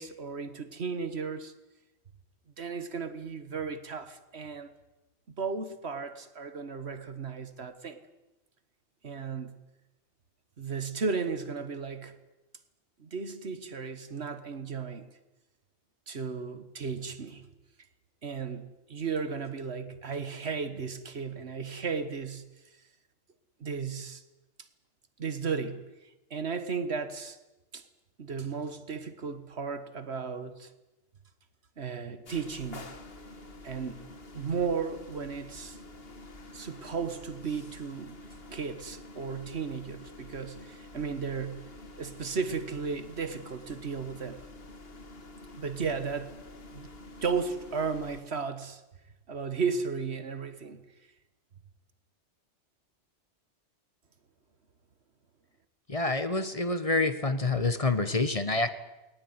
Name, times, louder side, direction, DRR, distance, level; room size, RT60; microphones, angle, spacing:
voice 1, 0.0-1.5 2.6-4.7 5.4-8.0 9.0-9.5 10.6-12.2 13.0-15.1 16.1-17.5 18.2-22.5 23.6-24.2 25.2-25.8 26.3-27.4 27.7-27.9 28.2-30.7 31.8-32.9 33.6-34.1 34.3-35.8 36.5-38.2 38.5-41.7 42.0-44.4 45.6-46.3 46.7-46.9 47.2-48.8 49.3-50.8, right 5 dB, 70° right, 1.8 m, -35 dB
sound 1, 32.3-48.2, left 2 dB, 60° left, 2.1 m, -48 dB
voice 2, 55.9-58.7, left 3 dB, 30° left, 1.2 m, -27 dB
20.0 x 19.0 x 9.6 m
omnidirectional pair, 1.2 m